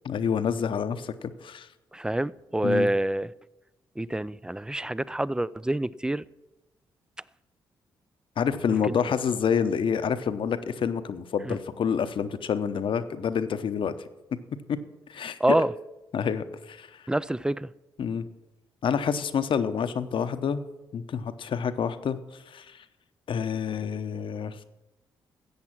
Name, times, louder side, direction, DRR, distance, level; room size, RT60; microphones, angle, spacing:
voice 1, 0.0-1.7 2.6-2.9 8.4-13.9 14.7-14.8 15.1-15.6 16.1-16.9 18.0-18.2 18.8-20.6 20.9-22.2 22.5-22.8 23.3-24.6, left 7 dB, 60° left, 11 dB, 0.8 m, -28 dB
voice 2, 1.9-3.3 4.0-6.2 8.9-9.0 11.5-11.6 15.4-15.7 17.1-17.7, right 1 dB, 10° right, 20 dB, 0.4 m, -27 dB
13.5 x 8.0 x 6.0 m, 1.0 s
hypercardioid pair, 45°, 10 cm